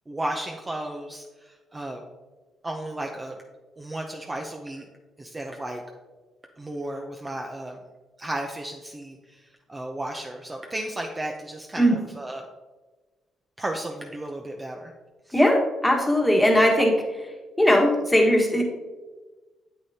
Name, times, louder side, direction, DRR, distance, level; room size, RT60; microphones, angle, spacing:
voice 1, 0.1-2.0 2.6-3.4 3.8-4.9 5.2-5.8 6.6-7.8 8.2-12.4 13.6-14.9 15.3-15.4, right 1 dB, 20° right, 2 dB, 0.7 m, -34 dB
voice 2, 15.3-17.0 17.6-18.6, equal, 10° left, 0 dB, 1.5 m, -19 dB
8.7 x 7.9 x 2.8 m, 1.3 s
cardioid pair, 90°, 0 cm